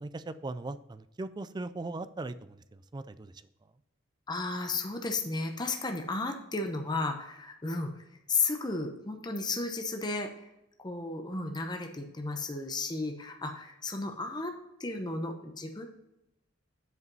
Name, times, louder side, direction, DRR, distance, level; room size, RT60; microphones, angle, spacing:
voice 1, 0.0-3.4, right 2 dB, 20° right, 13 dB, 0.3 m, -39 dB
voice 2, 4.3-7.9 8.3-10.3 10.8-14.5 14.8-15.9, left 3 dB, 20° left, 4 dB, 0.8 m, -33 dB
8.1 x 4.9 x 5.4 m, 0.88 s
head